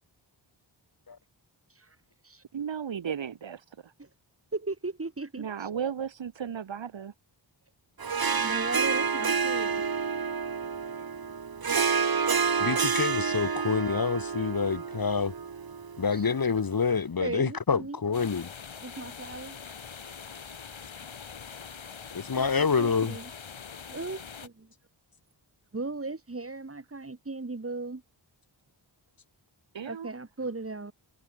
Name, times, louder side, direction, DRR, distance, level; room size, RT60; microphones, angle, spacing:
voice 1, 2.5-3.9 5.4-7.1 29.7-30.1, right 7 dB, 70° right, 1.2 m, -35 dB
voice 2, 4.5-5.7 8.3-9.8 10.8-10.9 16.1-16.2 17.2-18.0 18.8-19.6 22.3-23.3 23.9-24.7 25.7-28.0 29.9-30.9, right 3 dB, 30° right, 2.1 m, -37 dB
Harp, 8.0-16.6, right 5 dB, 50° right, 1.4 m, -29 dB
voice 3, 12.6-15.3 16.0-18.5 22.1-23.2, left 5 dB, 45° left, 1.3 m, -27 dB
sound 1, 18.1-24.5, left 6 dB, 75° left, 2.5 m, -43 dB
wide cardioid pair, 65°, 47 cm